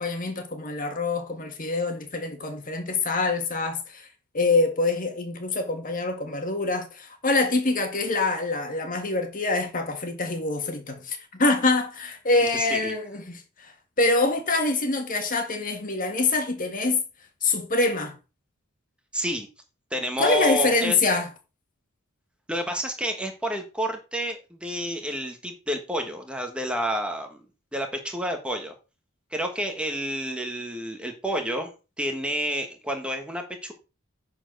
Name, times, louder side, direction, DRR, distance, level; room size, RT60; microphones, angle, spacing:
voice 1, 0.0-4.1 4.3-13.7 14.0-17.0 17.4-18.2 20.2-21.3, left 3 dB, 40° left, 1.9 m, -25 dB
voice 2, 12.5-12.9 19.1-19.5 19.9-21.0 22.5-27.4 27.7-28.7 29.3-31.7 32.0-33.7, equal, 5° right, 1.3 m, -29 dB
9.9 x 4.4 x 6.4 m
head